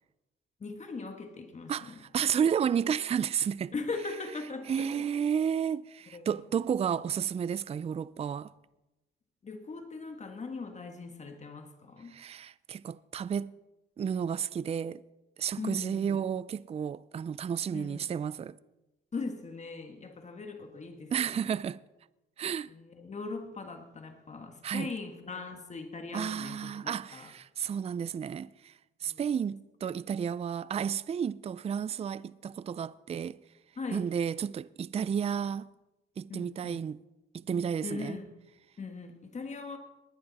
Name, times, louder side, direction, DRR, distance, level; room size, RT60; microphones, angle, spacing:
voice 1, 0.6-2.0 3.7-5.1 6.1-6.4 9.4-12.2 15.6-16.2 17.7-18.0 19.1-21.5 22.7-27.3 29.0-29.2 33.8-34.0 36.3-36.8 37.8-38.3 38.8-39.8, left 4 dB, 35° left, 1.7 m, -40 dB
voice 2, 1.7-3.7 4.7-8.5 12.1-13.5 14.0-15.0 15.4-18.6 21.1-21.8 22.4-22.7 24.6-24.9 26.1-28.7 29.0-33.4 33.9-35.7 36.2-37.0 37.3-38.2, right 8 dB, 30° right, 0.4 m, -32 dB
19.5 x 11.0 x 4.2 m
cardioid pair, 90°, 20 cm